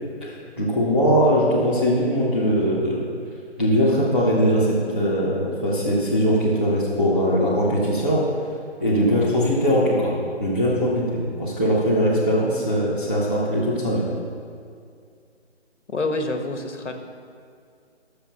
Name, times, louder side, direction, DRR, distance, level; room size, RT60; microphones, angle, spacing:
voice 1, 0.6-3.0 3.6-8.2 8.8-10.1 10.4-14.0, equal, 10° right, -12 dB, 0.7 m, -21 dB
voice 2, 15.9-16.9, left 2 dB, 85° left, 5 dB, 1.5 m, -27 dB
11.5 x 7.0 x 5.7 m, 2.3 s
hypercardioid pair, 170°, 35 cm